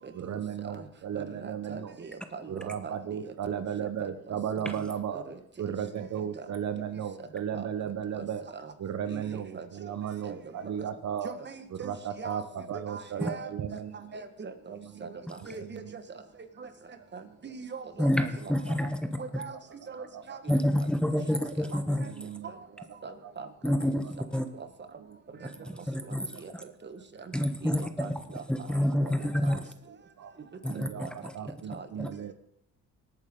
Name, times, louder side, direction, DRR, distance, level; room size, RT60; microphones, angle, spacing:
voice 1, 0.1-2.0 2.5-8.5 8.8-11.4 11.7-14.2 14.7-16.0 17.0-17.6 18.0-20.7 21.5-24.1 25.0-25.9 26.2-27.4 27.8-28.4 28.9-30.3 30.7-32.3, right 8 dB, 65° right, 10 dB, 1.0 m, -37 dB
voice 2, 1.1-2.9 3.2-3.3 4.0-4.1 4.6-4.8 5.1-5.3 6.2-6.3 7.5-7.7 8.1-8.2 8.5-8.6 9.1-9.7 10.2-10.4 11.2-11.9 12.2-12.4 12.9-13.5 14.1-14.8 15.0-16.0 16.6-16.7 17.1-18.3 19.2-19.6 19.9-20.6 23.0-23.5 24.6-24.7 25.4-25.5 26.4-26.5 26.8-27.0 27.6-28.1 29.0-29.1 29.4-29.5 31.7-31.9, right 5 dB, 35° right, 9 dB, 1.6 m, -42 dB
voice 3, 18.0-19.0 19.3-19.4 20.5-22.0 23.6-24.4 25.9-26.3 26.5-26.6 27.3-27.8 28.5-29.6 30.6-31.1 32.0-32.1, left 1 dB, 5° left, 7 dB, 1.2 m, -27 dB
20.0 x 9.0 x 3.9 m, 0.74 s
cardioid pair, 90°, 30 cm